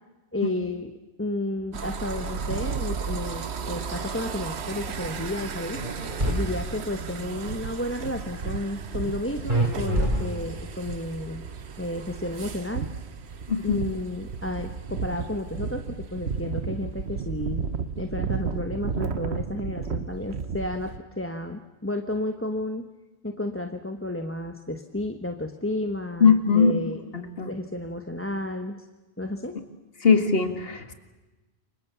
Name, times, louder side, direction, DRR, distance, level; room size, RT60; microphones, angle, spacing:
voice 1, 0.3-0.9 1.2-5.8 6.2-11.4 11.8-12.9 13.6-15.8 16.1-17.6 18.0-22.8 23.2-27.0 27.4-28.8 29.2-29.6, left 1 dB, 15° left, 5 dB, 1.2 m, -32 dB
sound 1, 1.7-21.0, right 6 dB, 90° right, 1.4 m, -33 dB
sound 2, 5.7-6.3 9.5-10.7, right 1 dB, 50° right, 5.1 m, -25 dB
voice 2, 13.5-13.8 26.2-26.7 27.4-27.5 30.0-30.9, left 5 dB, 65° left, 8 dB, 2.2 m, -20 dB
29.0 x 24.5 x 7.0 m, 1.1 s
omnidirectional pair, 1.1 m